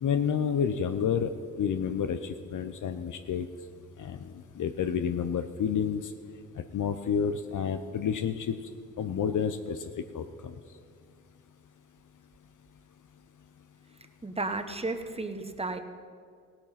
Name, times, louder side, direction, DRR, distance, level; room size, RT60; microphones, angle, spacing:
voice 1, 0.0-1.3 1.6-3.5 4.0-6.1 6.7-8.6 9.0-9.8 10.1-10.5, left 7 dB, 65° left, 8 dB, 0.7 m, -29 dB
voice 2, 14.2-15.8, right 2 dB, 20° right, 8 dB, 1.2 m, -33 dB
16.5 x 9.0 x 5.8 m, 2.1 s
cardioid pair, 60°, 32 cm